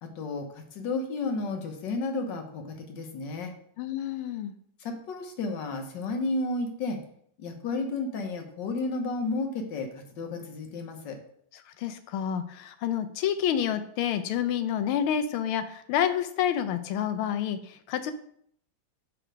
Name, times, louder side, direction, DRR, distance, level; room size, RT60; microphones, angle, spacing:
voice 1, 0.0-3.5 4.8-7.0 7.4-11.2, left 3 dB, 65° left, 5 dB, 1.6 m, -32 dB
voice 2, 3.8-4.5 11.8-18.1, left 9 dB, 90° left, 10 dB, 1.5 m, -28 dB
5.0 x 4.4 x 6.1 m, 0.65 s
omnidirectional pair, 2.2 m